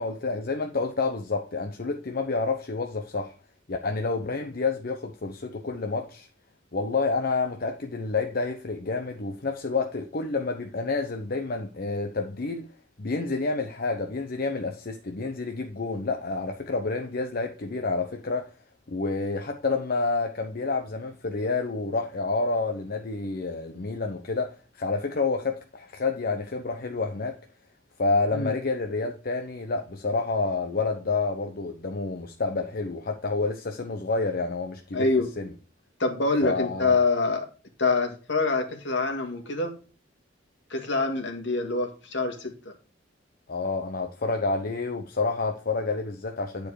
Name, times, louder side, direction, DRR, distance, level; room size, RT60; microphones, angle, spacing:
voice 1, 0.0-3.3 3.7-6.3 6.7-12.7 13.0-18.5 18.9-27.4 28.0-35.1 35.4-35.5 36.4-37.0 43.5-46.7, left 3 dB, 50° left, 0.8 m, -29 dB
voice 2, 34.9-35.3 36.0-37.5 37.8-39.7 40.7-42.5, left 3 dB, 70° left, 2.0 m, -25 dB
10.0 x 4.6 x 4.7 m
head